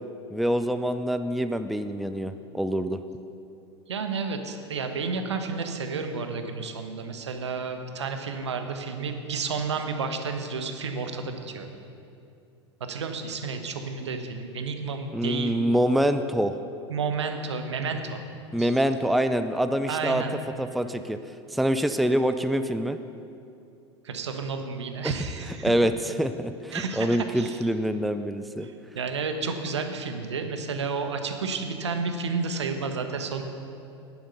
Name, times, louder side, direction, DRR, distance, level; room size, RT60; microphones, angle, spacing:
voice 1, 0.3-3.0 15.1-16.5 18.5-20.2 20.6-21.2 21.5-23.0 25.0-25.1 25.6-28.7, equal, ahead, 9 dB, 0.4 m, -25 dB
voice 2, 3.9-11.7 12.9-15.6 16.9-18.2 18.6-18.7 19.9-20.4 24.0-25.7 26.7-27.6 28.6-33.4, right 4 dB, 75° right, 6 dB, 1.2 m, -31 dB
10.5 x 9.4 x 6.8 m, 2.6 s
figure-of-eight pair, 85°, 15 cm